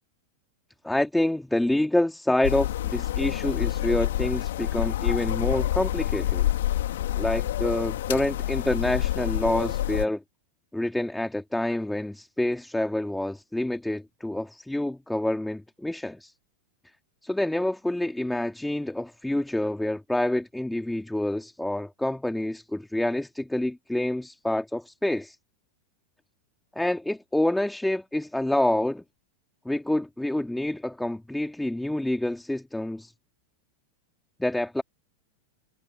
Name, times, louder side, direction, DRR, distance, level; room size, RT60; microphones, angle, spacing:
voice 1, 0.8-6.5 7.2-10.2 10.7-16.3 17.2-25.4 26.7-29.0 29.6-33.1 34.4-34.8, left 1 dB, 5° left, 3.1 m, -27 dB
sound 1, 2.4-10.1, left 13 dB, 60° left, 3.6 m, -27 dB
figure-of-eight pair, 90°, 0 cm